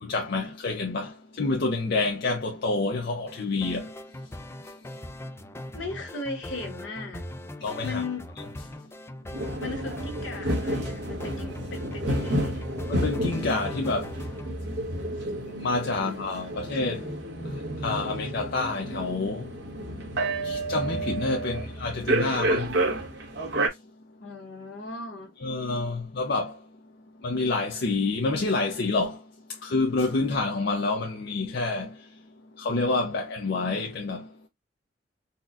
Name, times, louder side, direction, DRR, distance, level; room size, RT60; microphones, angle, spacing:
voice 1, 0.0-3.9 7.6-8.0 12.9-14.1 15.6-17.0 17.8-19.5 20.4-22.7 25.4-26.5 27.2-29.2 29.6-31.9 32.6-34.3, left 3 dB, 60° left, 0.6 m, -28 dB
sound 1, 3.3-14.5, left 1 dB, 15° left, 0.4 m, -41 dB
voice 2, 5.7-7.3 7.8-8.3 9.6-12.7 24.2-25.3, left 3 dB, 75° left, 1.2 m, -37 dB
sound 2, 9.3-23.7, right 1 dB, 60° right, 1.0 m, -30 dB
4.1 x 2.3 x 2.4 m
head